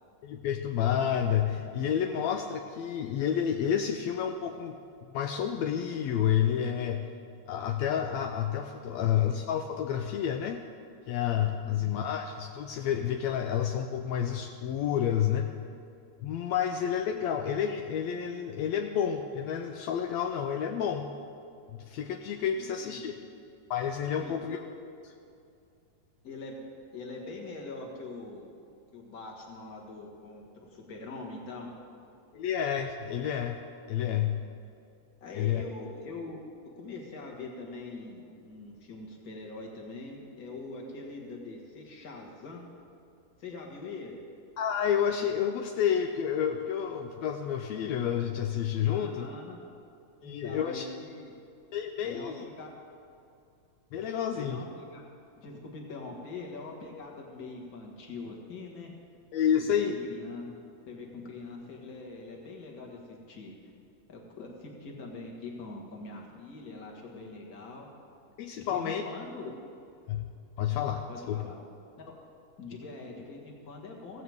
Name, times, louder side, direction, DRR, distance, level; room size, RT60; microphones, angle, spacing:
voice 1, 0.2-4.7 5.1-7.0 7.5-10.6 11.1-15.5 16.2-21.1 21.7-23.2 23.7-24.6 32.3-33.6 33.9-34.4 35.3-35.6 44.6-49.3 50.2-50.9 51.7-52.4 53.9-54.6 59.3-60.0 68.4-69.0 70.1-70.2 70.6-71.4, left 9 dB, 85° left, 5 dB, 1.5 m, -29 dB
voice 2, 22.8-23.3 24.2-24.6 26.2-26.7 26.9-28.5 28.9-31.7 35.2-36.4 36.8-42.6 43.4-44.2 48.8-49.6 50.2-51.3 52.0-52.7 54.4-55.0 55.4-58.9 59.5-60.5 60.9-63.5 64.1-67.9 68.6-69.5 71.1-71.5 72.0-72.1 72.6-74.2, left 3 dB, 35° left, 0 dB, 1.7 m, -43 dB
16.0 x 15.5 x 3.6 m, 2.6 s
omnidirectional pair, 3.7 m